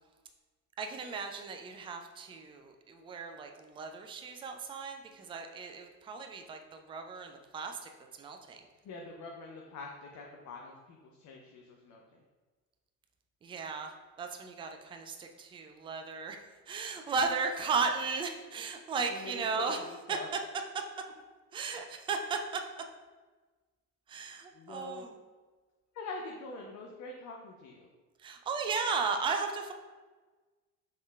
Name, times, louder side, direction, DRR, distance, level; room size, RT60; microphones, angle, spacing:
voice 1, 0.8-7.9 8.2-8.7 13.4-13.9 14.2-19.8 20.1-20.2 21.5-22.6 24.1-25.1 28.2-29.7, right 5 dB, 15° right, 5 dB, 0.3 m, -35 dB
voice 2, 8.8-12.2 19.1-20.3 24.5-25.0 25.9-27.9, left 3 dB, 40° left, 1 dB, 0.7 m, -44 dB
6.4 x 3.6 x 2.3 m, 1.3 s
figure-of-eight pair, 55°, 45 cm